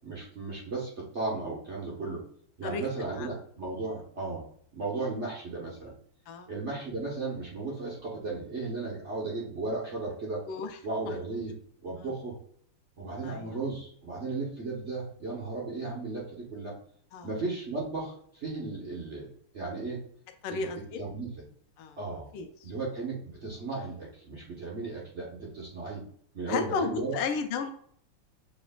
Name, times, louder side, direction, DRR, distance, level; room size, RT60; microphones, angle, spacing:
voice 1, 0.0-2.2 2.6-4.4 4.7-5.9 6.5-10.4 10.8-11.5 11.8-12.4 13.0-16.7 17.2-19.3 19.5-20.0 20.5-20.7 21.0-21.3 22.0-22.3 22.6-26.1 26.3-27.2, right 3 dB, 40° right, -4 dB, 1.0 m, -35 dB
voice 2, 10.5-10.8 12.0-12.1 13.2-13.6 17.1-17.3 20.4-21.0 21.8-22.0 22.3-22.7 26.5-27.7, left 5 dB, 85° left, 6 dB, 1.6 m, -33 dB
7.0 x 3.2 x 2.2 m, 0.63 s
omnidirectional pair, 2.4 m